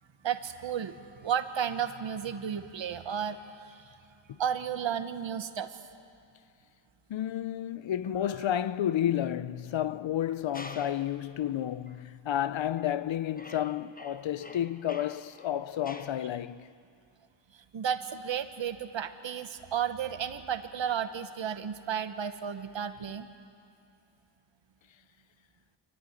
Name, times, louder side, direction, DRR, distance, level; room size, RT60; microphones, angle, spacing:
voice 1, 0.2-1.0 1.2-3.9 4.4-5.8 17.5-23.3, right 8 dB, 70° right, 1.2 m, -33 dB
voice 2, 7.1-16.7, left 11 dB, 70° left, 0.7 m, -31 dB
sound 1, 10.5-11.1 11.9-12.0 12.7-13.0 13.3-16.2, left 2 dB, 20° left, 1.1 m, -48 dB
25.0 x 13.0 x 9.8 m
cardioid pair, 75°, 47 cm